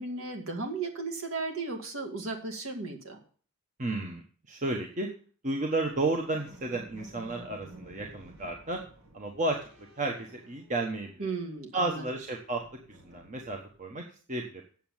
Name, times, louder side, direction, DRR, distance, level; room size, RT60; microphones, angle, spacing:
voice 1, 0.0-3.2 11.2-12.0, right 3 dB, 70° right, 2 dB, 2.1 m, -35 dB
voice 2, 3.8-4.2 4.5-5.1 5.4-8.8 9.1-9.6 10.0-11.3 11.7-12.6 12.9-14.0 14.3-14.6, right 2 dB, 35° right, 1 dB, 1.2 m, -32 dB
sound 1, 5.7-11.3 11.6-13.9, right 1 dB, 85° right, 4.7 m, -53 dB
8.5 x 7.3 x 7.2 m, 0.43 s
head